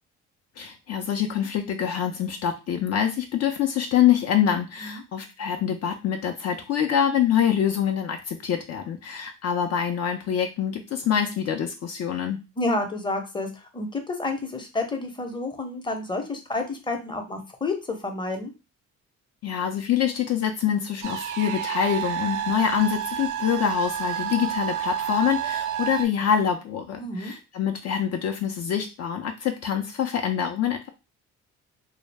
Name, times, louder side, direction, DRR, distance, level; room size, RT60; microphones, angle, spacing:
voice 1, 0.6-12.4 19.4-30.9, left 9 dB, 55° left, 4 dB, 0.4 m, -25 dB
voice 2, 12.6-18.5 27.0-27.3, left 2 dB, 15° left, 5 dB, 0.6 m, -30 dB
sound 1, 21.0-26.0, right 9 dB, 80° right, 0.5 m, -29 dB
2.3 x 2.0 x 3.2 m, 0.28 s
cardioid pair, 90°, 30 cm